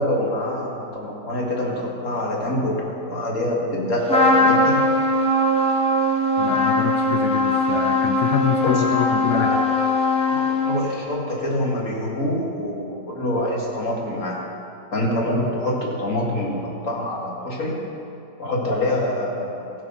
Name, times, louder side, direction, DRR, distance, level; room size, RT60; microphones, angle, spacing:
voice 1, 0.0-4.9 8.6-8.8 9.3-9.6 10.3-14.5 14.9-17.9 18.4-19.7, left 1 dB, 45° left, -2 dB, 2.2 m, -25 dB
Trumpet, 4.1-11.0, left 1 dB, 5° left, 1.1 m, -20 dB
voice 2, 6.4-9.6, left 8 dB, 65° left, 4 dB, 0.9 m, -26 dB
15.5 x 7.1 x 5.7 m, 2.7 s
omnidirectional pair, 1.9 m